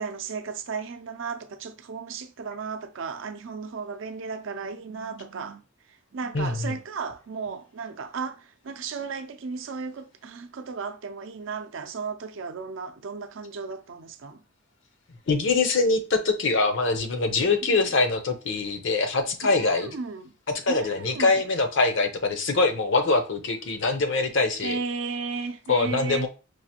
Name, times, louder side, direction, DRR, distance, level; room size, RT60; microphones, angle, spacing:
voice 1, 0.0-5.6 6.1-14.4 17.7-17.9 19.4-20.3 20.7-21.4 24.6-26.3, right 5 dB, 65° right, 0.5 m, -35 dB
voice 2, 6.3-6.7 15.3-19.9 20.7-24.8 25.7-26.3, left 3 dB, 60° left, 0.6 m, -23 dB
4.6 x 2.5 x 2.8 m
head